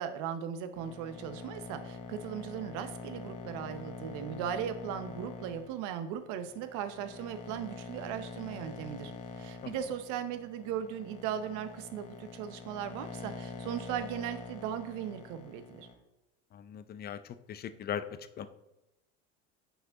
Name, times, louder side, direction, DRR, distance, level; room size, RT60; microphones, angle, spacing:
voice 1, 0.0-9.1 9.4-15.9, right 9 dB, 65° right, 9 dB, 0.8 m, -38 dB
sound 1, 0.7-15.9, left 4 dB, 45° left, 1.3 m, -45 dB
voice 2, 16.5-17.2 17.5-18.0 18.4-18.5, left 9 dB, 30° left, 12 dB, 0.5 m, -38 dB
6.8 x 4.4 x 3.7 m, 0.97 s
supercardioid pair, 90°, 33 cm